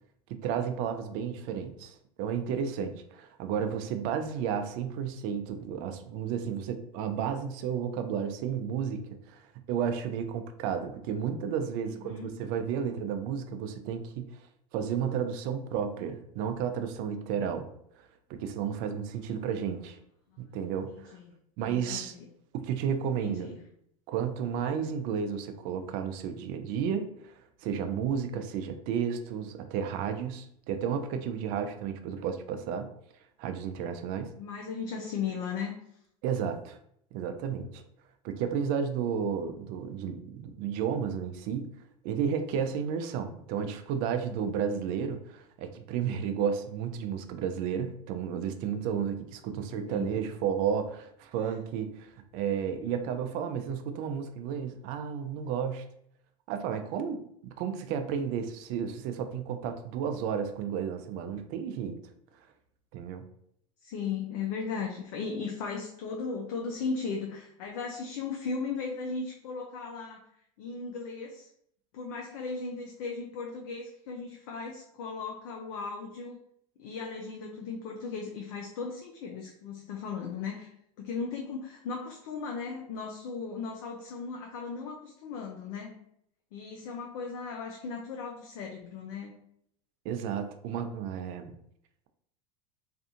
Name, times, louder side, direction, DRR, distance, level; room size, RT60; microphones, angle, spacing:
voice 1, 0.3-14.3 14.7-17.7 18.0-20.0 20.4-21.2 21.6-22.1 22.5-23.5 24.1-32.9 33.4-34.3 36.2-36.8 37.1-37.8 38.2-41.7 42.0-55.8 56.5-62.0 62.9-63.2 90.0-91.5, right 7 dB, 55° right, 8 dB, 0.4 m, -32 dB
voice 2, 11.8-12.4 20.9-21.3 21.6-22.3 23.2-23.6 34.4-35.8 49.9-50.1 63.8-70.2 70.6-71.5 71.9-76.4 76.8-86.0 86.5-89.3, left 5 dB, 65° left, 1 dB, 0.5 m, -37 dB
2.6 x 2.4 x 2.5 m, 0.71 s
hypercardioid pair, 95°, 19 cm